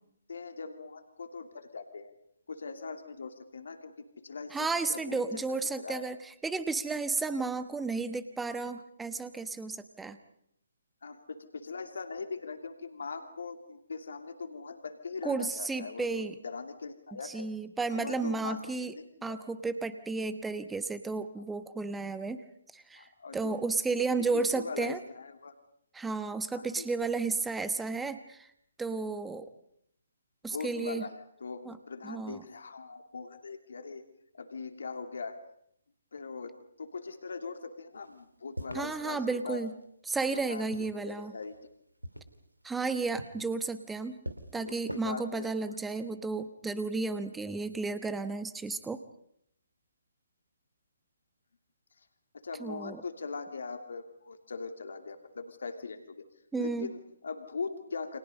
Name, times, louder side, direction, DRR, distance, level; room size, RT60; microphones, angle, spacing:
voice 1, 0.3-2.1 2.5-6.1 11.0-17.5 17.9-19.4 21.3-21.4 22.9-23.6 24.0-25.5 26.5-26.9 30.5-34.0 34.3-35.4 36.1-36.5 36.8-39.6 40.2-41.5 44.5-45.5 52.0-52.1 52.3-56.2 56.6-58.2, left 4 dB, 60° left, 6 dB, 2.8 m, -41 dB
voice 2, 4.5-10.2 15.2-16.3 17.2-18.9 19.2-22.4 22.7-23.1 23.3-25.0 25.9-28.5 28.8-29.5 30.4-31.0 31.6-31.8 32.0-32.4 38.7-39.7 40.1-41.3 42.6-44.2 44.5-49.0 52.6-53.0 56.5-56.9, right 4 dB, 5° right, 11 dB, 1.2 m, -33 dB
sound 1, 38.0-39.8 40.4-41.7 42.0-45.0, right 1 dB, 90° right, 2.7 m, -45 dB
29.5 x 26.0 x 5.4 m, 0.71 s
figure-of-eight pair, 135°, 0 cm